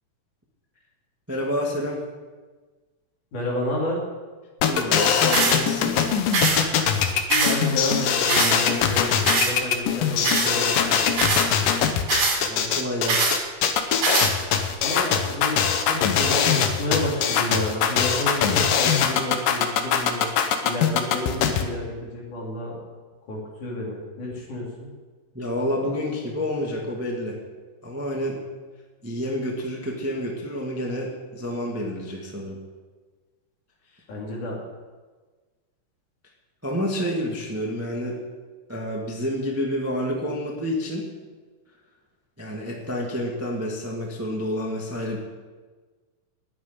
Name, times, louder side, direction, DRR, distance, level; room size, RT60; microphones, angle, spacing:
voice 1, 1.3-2.0 4.6-6.0 12.4-13.4 25.3-27.4 27.8-28.4 29.0-32.6 33.9-34.0 36.6-38.2 38.7-41.1 42.4-45.2, equal, 5° right, -1 dB, 1.2 m, -29 dB
voice 2, 3.3-4.0 7.3-11.1 14.8-20.3 20.6-22.7 23.3-24.9 34.1-34.6, left 1 dB, 65° left, -3 dB, 4.6 m, -30 dB
sound 1, 4.6-21.6, left 8 dB, 85° left, 2.7 m, -22 dB
sound 2, 5.3-5.6 6.3-6.6 7.3-7.6 8.3-8.6 9.3-9.5 10.2-10.5 11.2-11.5 12.1-12.4 13.1-13.4 14.0-14.3, right 3 dB, 80° right, 4.4 m, -22 dB
9.8 x 9.4 x 9.8 m, 1.4 s
omnidirectional pair, 3.8 m